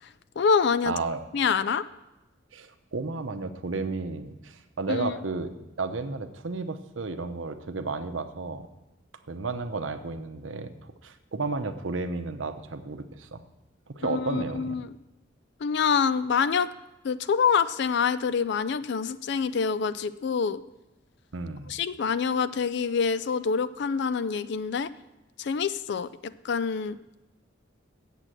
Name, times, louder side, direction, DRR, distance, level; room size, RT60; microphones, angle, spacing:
voice 1, 0.0-0.9 1.3-1.8 4.9-5.1 14.0-14.9 15.6-16.7 17.0-20.6 21.7-24.9 25.4-27.0, left 6 dB, 60° left, 15 dB, 0.4 m, -26 dB
voice 2, 0.9-1.2 2.5-5.5 5.8-8.7 9.3-13.4 13.9-14.8 21.3-21.7, right 3 dB, 80° right, 9 dB, 0.8 m, -33 dB
8.1 x 7.5 x 7.5 m, 1.0 s
head